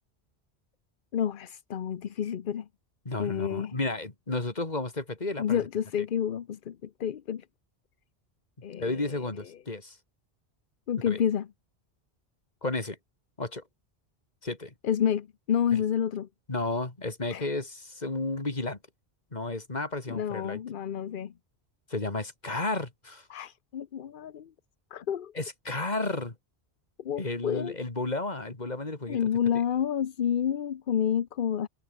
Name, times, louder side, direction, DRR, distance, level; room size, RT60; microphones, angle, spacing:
voice 1, 1.1-2.7 3.2-3.7 5.4-7.4 8.6-9.3 10.9-11.5 14.8-16.3 17.3-17.5 20.1-21.3 23.3-24.5 24.9-25.3 27.0-27.7 29.1-31.7, left 9 dB, 55° left, 0.8 m, -29 dB
voice 2, 3.0-5.6 8.8-10.0 11.1-11.2 12.6-13.0 13.4-13.6 14.4-14.7 16.5-18.8 19.3-20.6 21.9-23.3 25.3-26.3 27.2-29.3, left 2 dB, 40° left, 2.8 m, -32 dB
omnidirectional pair, 1.1 m